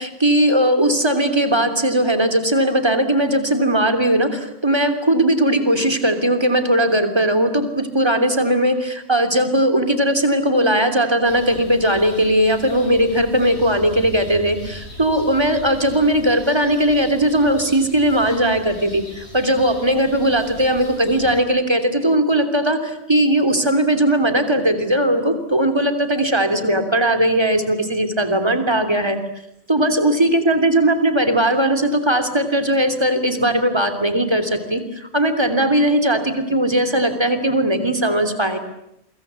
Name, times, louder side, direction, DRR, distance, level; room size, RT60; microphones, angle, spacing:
voice 1, 0.0-29.2 29.7-38.6, right 1 dB, 25° right, 8 dB, 3.2 m, -18 dB
sound 1, 11.2-21.4, left 1 dB, 75° left, 7.3 m, -40 dB
29.0 x 24.5 x 8.3 m, 0.80 s
omnidirectional pair, 1.1 m